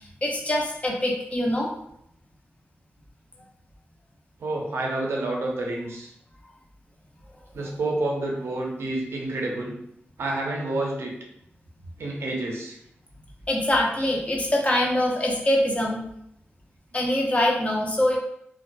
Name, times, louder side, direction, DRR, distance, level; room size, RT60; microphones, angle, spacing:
voice 1, 0.2-1.7 13.5-16.0 16.9-18.2, left 1 dB, 30° left, -1 dB, 0.6 m, -23 dB
voice 2, 4.4-6.1 7.5-9.8 10.2-11.1 12.0-12.8, right 2 dB, 80° right, -1 dB, 0.6 m, -29 dB
2.5 x 2.3 x 2.2 m, 0.73 s
cardioid pair, 75°, 4 cm